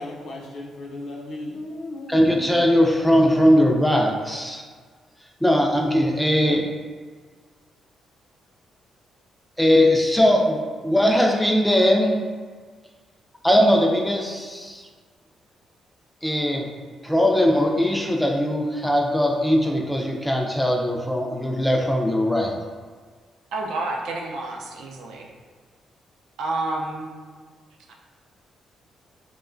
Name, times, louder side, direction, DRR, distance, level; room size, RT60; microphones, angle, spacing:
voice 1, 0.0-2.6, left 2 dB, 70° left, -3 dB, 0.6 m, -36 dB
voice 2, 2.1-4.6 5.4-6.6 9.6-12.2 13.4-14.8 16.2-16.7 17.0-22.5, equal, 5° left, 0 dB, 0.3 m, -20 dB
voice 3, 23.5-25.3 26.4-27.1 27.9-28.0, right 2 dB, 90° right, 0 dB, 0.4 m, -29 dB
2.9 x 2.1 x 2.4 m, 1.5 s
cardioid pair, 140°, 0 cm